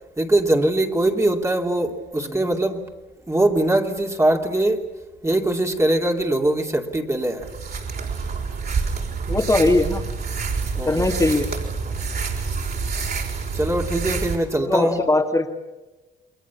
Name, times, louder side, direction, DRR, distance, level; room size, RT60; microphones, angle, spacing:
voice 1, 0.2-2.9 3.3-4.8 5.2-7.5 10.7-11.1 13.5-15.0, right 1 dB, 15° right, 2 dB, 2.8 m, -22 dB
sound 1, 7.4-14.4, right 4 dB, 50° right, 5.5 m, -27 dB
voice 2, 9.3-10.0 10.8-11.5 14.6-15.5, left 2 dB, 15° left, 2 dB, 2.2 m, -20 dB
29.0 x 21.5 x 7.2 m, 1.1 s
cardioid pair, 90°, 20 cm